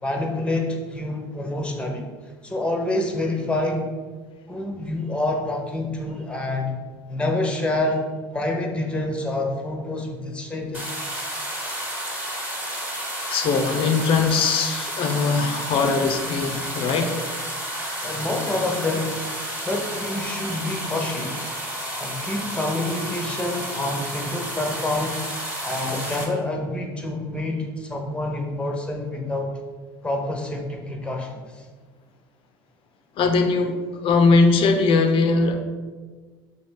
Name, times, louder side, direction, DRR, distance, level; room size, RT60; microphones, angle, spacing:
voice 1, 0.0-2.1 2.4-3.9 4.5-6.7 7.1-8.0 8.3-11.0 18.0-19.2 19.6-21.5 22.0-25.2 25.6-29.6 30.0-31.6, left 2 dB, 10° left, 2 dB, 0.8 m, -27 dB
sound 1, 10.7-26.2, equal, 10° right, 1.1 m, -31 dB
voice 2, 13.3-17.2 33.2-35.6, left 4 dB, 45° left, 6 dB, 0.5 m, -20 dB
3.1 x 2.9 x 4.5 m, 1.4 s
hypercardioid pair, 75°, 12 cm